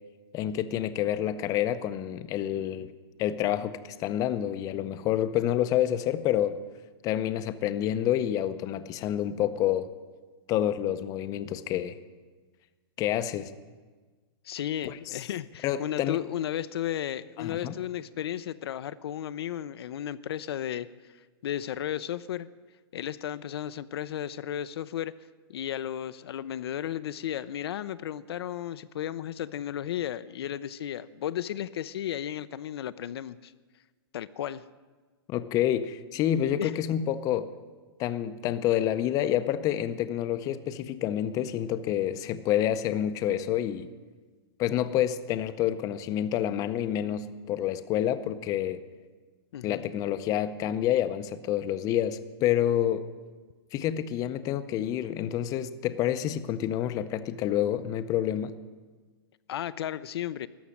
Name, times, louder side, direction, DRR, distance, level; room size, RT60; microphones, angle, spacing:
voice 1, 0.3-2.9 3.2-6.6 7.0-9.9 10.5-12.0 13.0-13.5 14.8-15.2 15.6-16.2 17.4-17.7 35.3-37.5 38.0-43.9 44.6-48.8 49.6-53.0 53.7-58.5, left 11 dB, 25° left, 12 dB, 0.5 m, -28 dB
voice 2, 14.4-22.5 22.9-25.1 25.5-33.5 34.1-34.6 36.6-36.7 49.5-49.8 59.5-60.5, left 11 dB, 75° left, 13 dB, 0.5 m, -34 dB
13.0 x 6.2 x 9.8 m, 1.4 s
hypercardioid pair, 145°, 13 cm